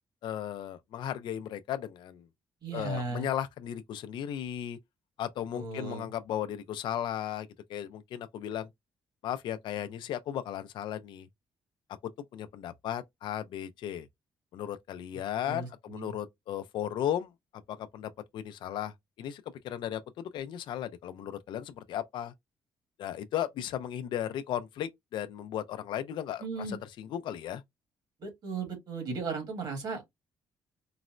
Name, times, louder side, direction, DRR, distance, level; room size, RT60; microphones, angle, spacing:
voice 1, 0.2-2.2 2.7-4.8 5.2-8.7 9.2-11.3 12.3-14.1 14.5-22.3 23.0-27.6, left 10 dB, 65° left, 0.4 m, -36 dB
voice 2, 2.6-3.3 5.5-6.1 15.4-16.1 26.4-26.8 28.2-30.0, right 4 dB, 55° right, 1.5 m, -36 dB
3.9 x 2.1 x 2.4 m
cardioid pair, 155°, 9 cm